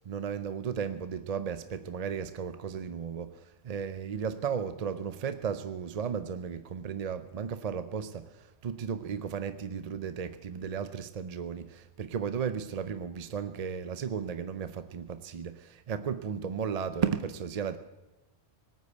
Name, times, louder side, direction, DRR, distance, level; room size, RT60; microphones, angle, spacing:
voice 1, 0.0-17.8, right 7 dB, 45° right, 11 dB, 0.5 m, -35 dB
18.5 x 8.4 x 8.1 m, 1.1 s
omnidirectional pair, 1.2 m